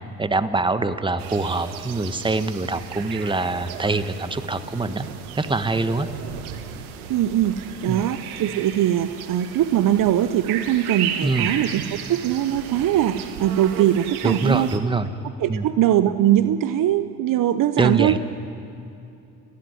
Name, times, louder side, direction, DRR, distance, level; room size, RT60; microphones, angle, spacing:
voice 1, 0.2-5.1 5.3-6.1 7.9-8.0 11.2-11.5 14.2-15.1 15.5-15.6 17.8-18.2, right 3 dB, 10° right, 11 dB, 1.3 m, -24 dB
sound 1, 1.2-14.8, right 9 dB, 75° right, 1.6 m, -35 dB
voice 2, 7.1-14.7 15.4-18.2, right 11 dB, 50° right, 12 dB, 0.9 m, -21 dB
29.5 x 11.5 x 9.8 m, 2.6 s
hypercardioid pair, 60°, 43 cm